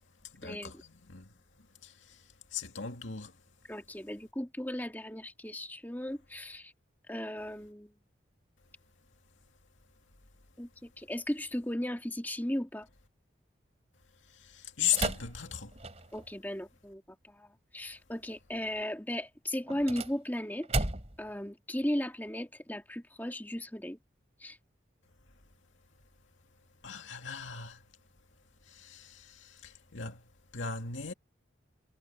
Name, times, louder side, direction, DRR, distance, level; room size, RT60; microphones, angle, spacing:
voice 1, 0.2-1.3 1.8-3.4 14.2-15.8 26.8-27.9 28.6-31.1, left 8 dB, 90° left, 2.3 m, -38 dB
voice 2, 3.7-6.7 7.1-7.9 10.6-12.9 16.1-17.0 17.3-20.9 21.2-24.0 24.4-24.6, left 1 dB, 10° left, 2.1 m, -36 dB
sound 1, 14.9-16.3 19.6-21.3, right 2 dB, 35° right, 3.2 m, -35 dB
head